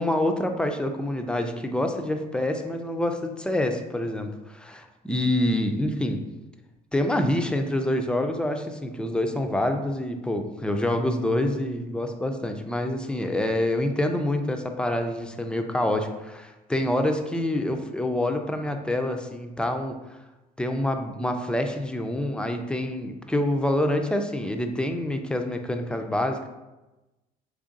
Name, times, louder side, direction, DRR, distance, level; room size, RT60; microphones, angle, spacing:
voice 1, 0.0-6.2 6.9-20.0 20.6-26.5, left 1 dB, 5° left, 5 dB, 0.3 m, -26 dB
3.2 x 2.5 x 3.8 m, 1.0 s
cardioid pair, 110°, 17 cm